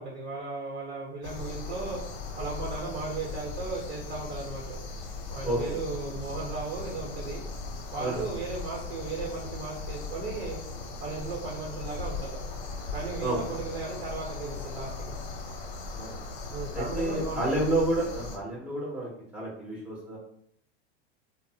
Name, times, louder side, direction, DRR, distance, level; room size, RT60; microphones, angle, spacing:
voice 1, 0.0-2.0 2.4-4.8 5.3-7.4 7.9-10.6 11.0-12.4 12.9-15.1 16.5-17.8, right 3 dB, 70° right, -3 dB, 0.8 m, -36 dB
sound 1, 1.2-18.4, left 3 dB, 50° left, 0.6 m, -38 dB
voice 2, 5.4-5.8 8.0-8.3 13.2-13.4 15.9-16.2 16.7-20.2, right 1 dB, 5° right, -5 dB, 0.4 m, -30 dB
2.6 x 2.0 x 2.6 m, 0.69 s
supercardioid pair, 125°, 34 cm